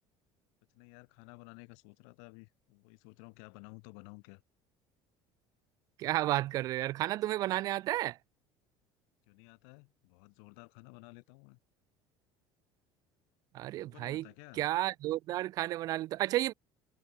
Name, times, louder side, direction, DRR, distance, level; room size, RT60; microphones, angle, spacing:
voice 1, 0.7-4.4 9.3-11.6 13.8-14.7, left 40 dB or more, 75° left, 3.1 m, -54 dB
voice 2, 6.0-8.2 13.5-14.2 14.6-16.5, right 15 dB, 35° right, 0.3 m, -32 dB
cardioid pair, 180°, 10 cm